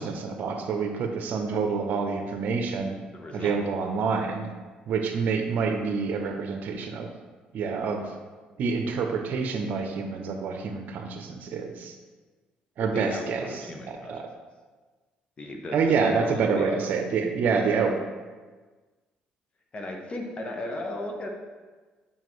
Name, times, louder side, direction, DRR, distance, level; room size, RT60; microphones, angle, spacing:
voice 1, 0.0-3.0 3.3-4.5 4.9-7.1 7.5-8.1 8.6-12.0 12.8-14.3 15.7-18.0, right 5 dB, 65° right, 5 dB, 0.8 m, -27 dB
voice 2, 3.1-3.6 12.8-14.1 15.4-16.8 19.7-21.3, left 1 dB, 35° left, 2 dB, 1.1 m, -35 dB
7.3 x 4.9 x 3.2 m, 1.3 s
cardioid pair, 85°, 3 cm